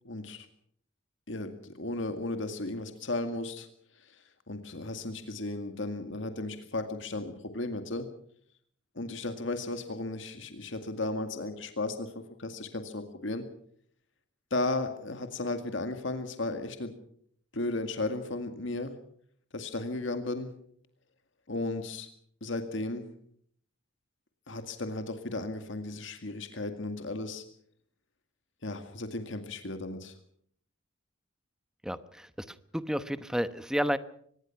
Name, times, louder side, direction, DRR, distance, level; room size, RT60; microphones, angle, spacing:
voice 1, 0.0-0.5 1.3-3.7 4.0-8.1 9.0-13.4 14.5-16.9 17.5-19.0 19.5-20.5 21.5-22.1 22.4-23.1 24.5-27.4 28.6-30.2, left 2 dB, 65° left, 7 dB, 2.1 m, -35 dB
voice 2, 31.8-34.0, equal, 5° right, 12 dB, 1.0 m, -31 dB
24.5 x 20.5 x 5.9 m, 0.63 s
head